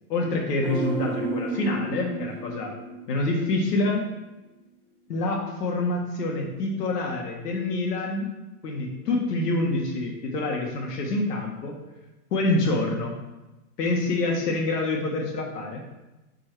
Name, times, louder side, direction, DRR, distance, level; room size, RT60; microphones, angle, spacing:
voice 1, 0.1-2.7 3.1-4.1 5.1-8.3 8.6-11.8 12.3-13.2 13.8-15.8, left 2 dB, 90° left, 1 dB, 1.6 m, -26 dB
sound 1, 0.6-3.9 4.2-4.3, right 3 dB, 10° left, 0.8 m, -32 dB
7.6 x 4.4 x 4.7 m, 1.1 s
supercardioid pair, 165°, 46 cm